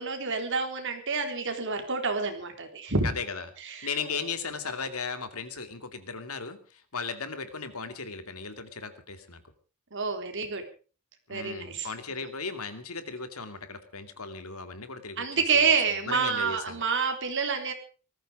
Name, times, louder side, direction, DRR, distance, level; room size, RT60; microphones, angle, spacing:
voice 1, 0.0-3.1 3.7-4.1 9.9-10.6 11.3-11.9 15.2-17.7, right 5 dB, 60° right, 6 dB, 3.8 m, -28 dB
voice 2, 3.0-3.4 3.8-9.4 11.3-15.7 16.1-16.8, left 5 dB, 80° left, 9 dB, 2.6 m, -36 dB
19.0 x 14.5 x 4.9 m, 0.38 s
head